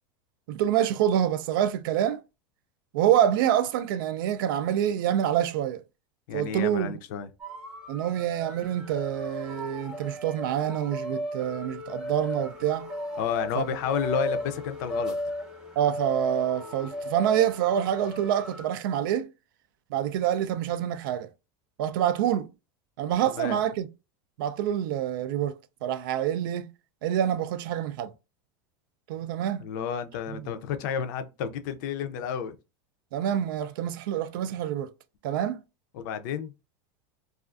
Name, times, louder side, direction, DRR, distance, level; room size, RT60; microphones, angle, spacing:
voice 1, 0.5-2.2 2.9-5.8 6.3-6.9 7.9-12.9 13.6-13.7 15.8-19.3 19.9-21.3 21.8-22.5 23.0-23.9 24.4-26.7 27.0-28.1 29.1-29.6 33.1-34.9 35.2-35.6, right 10 dB, 75° right, 0.4 m, -26 dB
voice 2, 6.3-7.3 13.2-15.2 23.3-23.6 29.6-32.6 35.9-36.5, left 7 dB, 60° left, 0.4 m, -31 dB
sound 1, 7.4-18.6, left 1 dB, 5° right, 0.8 m, -36 dB
2.4 x 2.3 x 2.4 m
supercardioid pair, 155°, 11 cm